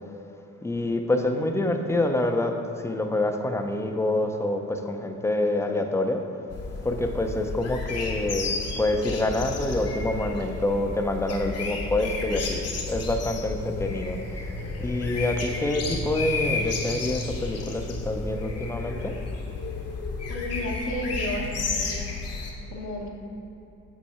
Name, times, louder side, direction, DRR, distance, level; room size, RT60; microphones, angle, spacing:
voice 1, 0.6-6.2 6.8-14.2 14.8-19.1, left 2 dB, 10° left, 5 dB, 0.5 m, -27 dB
sound 1, 6.5-22.5, left 3 dB, 55° left, 1.0 m, -32 dB
sound 2, 12.2-20.0, right 1 dB, 40° right, 1.3 m, -40 dB
voice 2, 20.3-22.1 22.7-23.1, left 1 dB, 75° left, -1 dB, 1.0 m, -32 dB
7.4 x 4.5 x 4.2 m, 2.9 s
cardioid pair, 90°, 30 cm